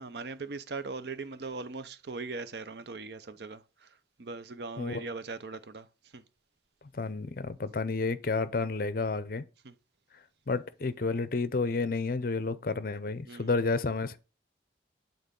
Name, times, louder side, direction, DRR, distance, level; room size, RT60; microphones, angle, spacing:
voice 1, 0.0-3.6 4.2-5.8 6.1-6.2 9.6-9.7 13.3-13.5, right 3 dB, 60° right, 0.6 m, -39 dB
voice 2, 4.8-5.1 6.9-9.4 10.5-14.2, left 3 dB, 50° left, 0.6 m, -31 dB
8.9 x 3.9 x 5.3 m
head